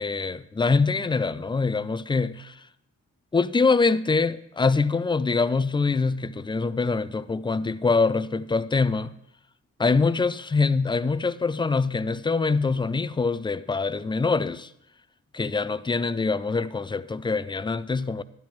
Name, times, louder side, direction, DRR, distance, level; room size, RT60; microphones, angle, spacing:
voice 1, 0.0-2.6 3.3-9.1 9.8-14.7 15.3-18.2, left 4 dB, 15° left, 0.4 m, -24 dB
12.0 x 10.0 x 3.1 m
cardioid pair, 85°, 32 cm